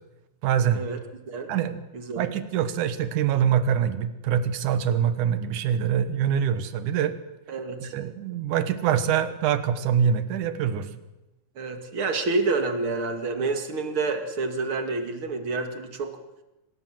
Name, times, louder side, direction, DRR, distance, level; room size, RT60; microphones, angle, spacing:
voice 1, 0.4-0.8 1.5-1.8 2.2-7.1 7.9-10.9, right 8 dB, 85° right, 11 dB, 2.7 m, -24 dB
voice 2, 1.9-2.3 7.5-7.9 11.6-16.1, right 3 dB, 45° right, 6 dB, 2.8 m, -28 dB
26.5 x 19.5 x 7.7 m, 0.97 s
omnidirectional pair, 3.4 m